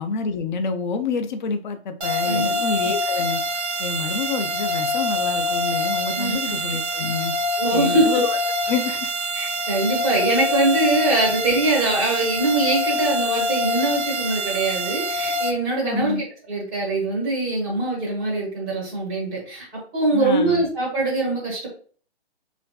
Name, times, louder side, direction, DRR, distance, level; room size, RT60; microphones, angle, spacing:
voice 1, 0.0-3.4 3.8-7.3 7.7-8.4 8.6-9.1 15.8-16.2 20.1-20.7, left 5 dB, 45° left, 8 dB, 0.4 m, -27 dB
sound 1, 2.0-15.5, left 1 dB, 90° right, 0.8 m, -25 dB
voice 2, 2.2-2.6 6.2-6.6 7.5-8.1 9.3-19.7 19.9-21.7, right 2 dB, 10° right, -3 dB, 0.6 m, -23 dB
3.4 x 2.5 x 2.2 m, 0.43 s
hypercardioid pair, 145°, 33 cm